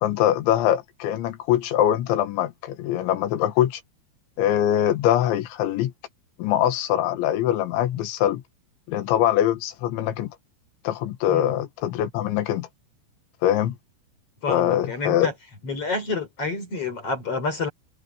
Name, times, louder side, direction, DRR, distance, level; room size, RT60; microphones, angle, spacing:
voice 1, 0.0-3.8 4.4-5.9 6.4-8.4 8.9-10.4 10.9-12.7 13.4-13.8 14.5-15.3, left 11 dB, 75° left, 3.7 m, -23 dB
voice 2, 14.4-15.3 15.6-17.7, left 3 dB, 30° left, 4.1 m, -28 dB
omnidirectional pair, 5.6 m